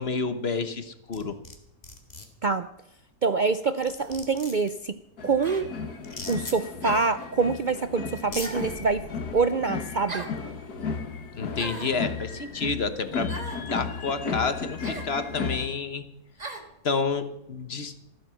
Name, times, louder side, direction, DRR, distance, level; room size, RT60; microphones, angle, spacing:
voice 1, 0.0-1.4 11.4-13.3 13.6-16.0 16.8-17.9, left 4 dB, 45° left, 10 dB, 1.3 m, -29 dB
sound 1, 1.1-1.6 1.8-2.3 3.5-3.6 3.8-4.7 6.0-6.6 7.7-7.8 8.2-8.5, left 2 dB, 25° left, 2.0 m, -38 dB
voice 2, 3.2-4.9 5.2-5.7 6.3-9.0 9.3-10.3, right 4 dB, 65° right, 12 dB, 0.4 m, -25 dB
sound 2, 4.0-4.2 5.4-5.7 6.8-7.2 8.4-8.8 10.1-10.4 11.5-12.0 13.3-13.6 14.8-15.1 16.4-16.7, right 2 dB, 25° right, 1.8 m, -38 dB
sound 3, 5.2-15.7, left 5 dB, 80° left, 2.1 m, -34 dB
15.0 x 12.5 x 6.3 m, 0.82 s
omnidirectional pair, 1.6 m